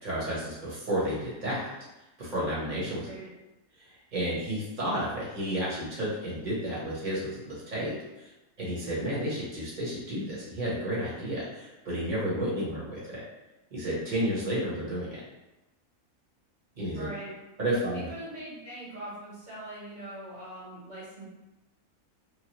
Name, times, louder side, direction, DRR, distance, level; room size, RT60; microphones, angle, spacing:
voice 1, 0.0-1.7 2.2-3.1 4.1-8.3 8.6-13.2 13.7-15.2 16.7-17.1 17.6-18.1, equal, 35° right, -8 dB, 1.1 m, -31 dB
voice 2, 16.9-17.3 17.9-21.2, right 1 dB, 70° right, -11 dB, 1.7 m, -42 dB
3.1 x 2.3 x 2.9 m, 1.0 s
omnidirectional pair, 1.5 m